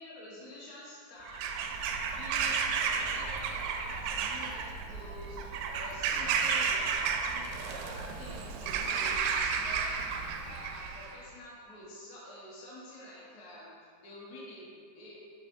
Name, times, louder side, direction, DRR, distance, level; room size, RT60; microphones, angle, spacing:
voice 1, 0.0-1.6 2.0-10.1 10.4-15.2, left 1 dB, 80° left, -7 dB, 0.8 m, -48 dB
Bird vocalization bird call bird song / Crow, 1.3-11.1, right 6 dB, 85° right, 2.3 m, -32 dB
6.6 x 6.3 x 2.6 m, 2.2 s
omnidirectional pair, 4.1 m